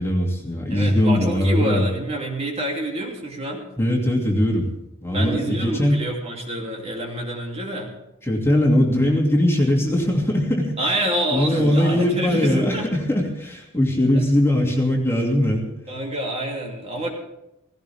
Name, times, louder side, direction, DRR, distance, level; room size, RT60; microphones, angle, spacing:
voice 1, 0.0-1.9 3.8-4.7 5.0-6.0 8.2-10.7 11.3-15.7, left 1 dB, 10° left, -1 dB, 2.7 m, -20 dB
voice 2, 0.7-3.7 5.1-7.9 10.8-12.9 14.1-14.3 15.9-17.1, right 1 dB, 30° right, 0 dB, 3.1 m, -27 dB
18.0 x 16.5 x 3.6 m, 0.89 s
head